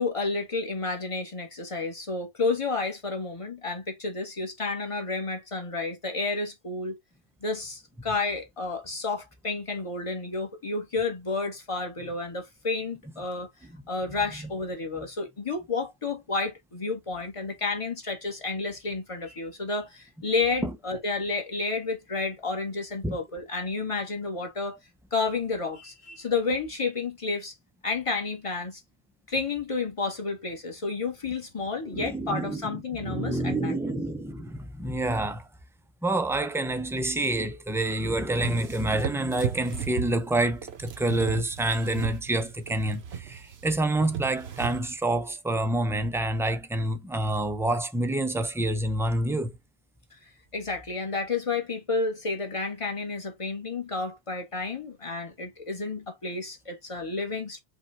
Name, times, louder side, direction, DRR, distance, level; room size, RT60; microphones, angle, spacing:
voice 1, 0.0-7.0 7.4-13.5 13.9-24.8 25.1-27.5 27.8-28.8 29.3-33.9 50.5-57.6, left 3 dB, 30° left, 1.3 m, -31 dB
voice 2, 31.8-35.5 36.0-49.5, right 1 dB, 5° right, 0.4 m, -28 dB
sound 1, 38.4-44.9, right 8 dB, 80° right, 1.1 m, -36 dB
5.2 x 2.4 x 4.3 m
omnidirectional pair, 1.1 m